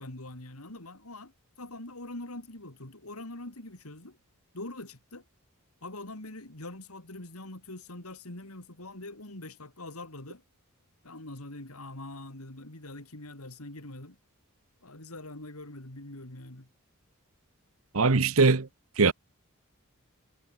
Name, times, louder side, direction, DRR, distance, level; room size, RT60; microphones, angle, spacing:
voice 1, 0.0-1.3 1.6-4.2 4.5-5.2 5.8-10.4 11.0-14.2 14.8-16.7, left 2 dB, 90° left, 4.3 m, -43 dB
voice 2, 17.9-18.7 19.0-19.1, right 4 dB, 70° right, 1.0 m, -21 dB
head